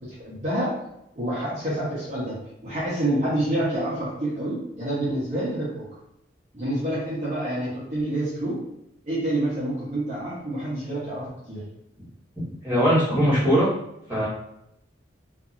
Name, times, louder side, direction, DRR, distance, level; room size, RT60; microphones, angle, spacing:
voice 1, 0.0-0.8 1.2-5.8 6.5-8.6 9.1-11.6, right 1 dB, 40° right, -10 dB, 0.9 m, -28 dB
voice 2, 12.6-13.7 14.1-14.3, equal, 10° right, -11 dB, 1.3 m, -20 dB
2.7 x 2.6 x 2.5 m, 0.81 s
head